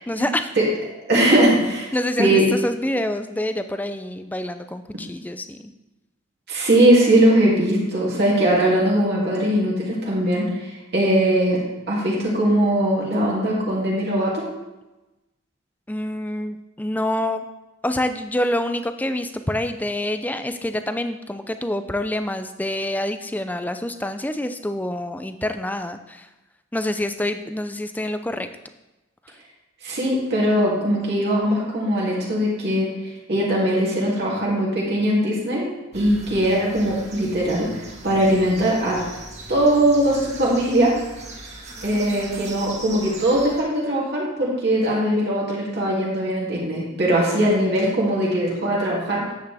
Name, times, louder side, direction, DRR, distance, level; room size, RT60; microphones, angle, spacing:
voice 1, 0.1-0.5 1.9-5.7 15.9-17.4 17.8-26.3 26.7-28.5, left 1 dB, 10° left, 9 dB, 0.4 m, -26 dB
voice 2, 1.1-1.8 2.2-2.4 6.5-11.6 11.9-14.4 29.8-32.9 33.3-35.7 35.9-39.0 39.5-40.9 41.8-49.2, right 1 dB, 50° right, -5 dB, 2.6 m, -20 dB
sound 1, 35.9-43.6, right 2 dB, 35° right, 1.5 m, -39 dB
10.0 x 8.1 x 3.4 m, 1.1 s
head